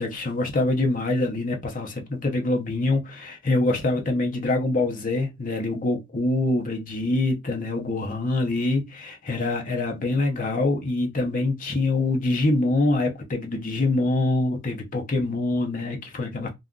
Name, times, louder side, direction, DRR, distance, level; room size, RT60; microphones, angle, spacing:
voice 1, 0.0-16.5, left 2 dB, 35° left, 0.7 m, -25 dB
2.5 x 2.3 x 3.6 m
head